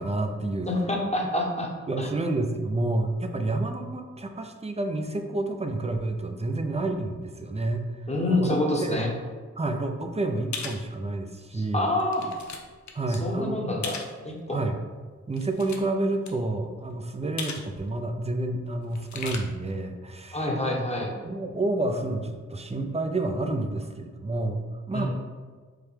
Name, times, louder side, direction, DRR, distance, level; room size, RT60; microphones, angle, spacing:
voice 1, 0.0-0.7 1.9-7.8 8.3-9.1 9.6-11.9 12.9-13.6 14.5-14.8 15.3-20.5 21.2-24.6 24.9-25.1, right 2 dB, 20° right, 5 dB, 0.5 m, -29 dB
voice 2, 0.7-1.7 2.0-2.1 8.1-9.1 11.5-12.3 13.1-14.0 14.2-14.6 20.3-21.1 24.9-25.1, left 1 dB, 20° left, -1 dB, 1.0 m, -27 dB
sound 1, 10.5-10.8 11.4-11.5 12.0-12.6 12.9-13.2 13.8-14.1 15.3-16.0 16.2-16.3 17.4-17.7 17.9-18.0 18.9-19.4, left 5 dB, 75° left, 0.5 m, -36 dB
5.0 x 2.1 x 3.3 m, 1.4 s
cardioid pair, 50°, 29 cm